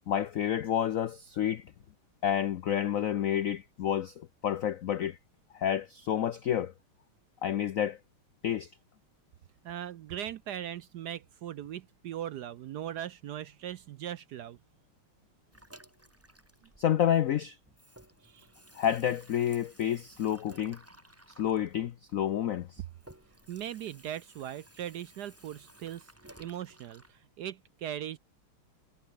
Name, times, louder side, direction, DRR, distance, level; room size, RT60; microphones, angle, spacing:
voice 1, 0.1-1.7 2.2-5.2 5.5-6.7 7.4-8.0 8.4-8.7 16.8-17.6 18.7-20.8 21.4-22.8, left 10 dB, 90° left, 0.7 m, -29 dB
voice 2, 9.6-14.6 18.2-18.5 23.5-26.1 26.4-28.2, right 11 dB, 70° right, 1.0 m, -39 dB
Water tap faucet / Sink (filling or washing), 15.5-17.3 17.6-27.1, right 1 dB, 5° right, 2.1 m, -56 dB
omnidirectional pair, 2.3 m